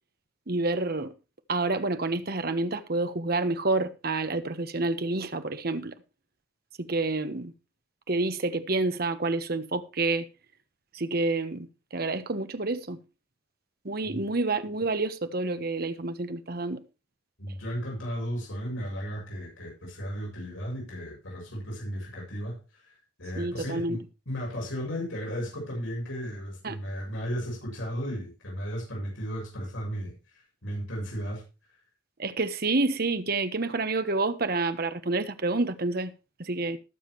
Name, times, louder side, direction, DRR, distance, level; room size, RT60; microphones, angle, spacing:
voice 1, 0.5-1.1 1.5-6.0 6.8-7.5 8.1-10.3 10.9-13.0 13.8-16.8 23.3-24.0 26.6-26.8 32.2-36.1 36.4-36.8, right 3 dB, 50° right, 1.2 m, -28 dB
voice 2, 17.4-22.6 23.2-30.1 30.6-31.4, equal, 80° left, 7.2 m, -35 dB
19.5 x 7.4 x 3.2 m
head